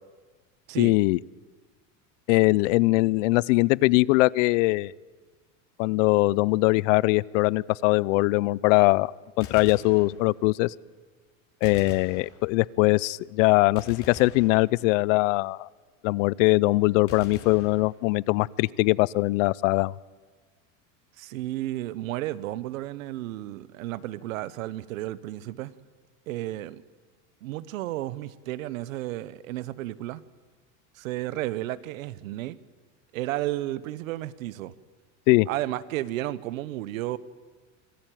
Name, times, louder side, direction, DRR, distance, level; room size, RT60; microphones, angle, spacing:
voice 1, 0.8-1.2 2.3-4.9 5.8-9.1 9.4-10.7 11.6-15.7 16.0-19.9 35.3-35.5, left 22 dB, 70° left, 24 dB, 0.6 m, -21 dB
Gunshot gunfire, 9.4-10.6 11.6-12.8 13.8-15.2 17.1-18.4, left 5 dB, 35° left, 2.9 m, -45 dB
voice 2, 21.2-25.7 26.3-26.8 27.4-30.2 30.9-32.6 33.1-34.7 35.5-37.2, right 15 dB, 90° right, 18 dB, 1.0 m, -32 dB
24.5 x 14.5 x 9.2 m, 1.4 s
supercardioid pair, 140°, 39 cm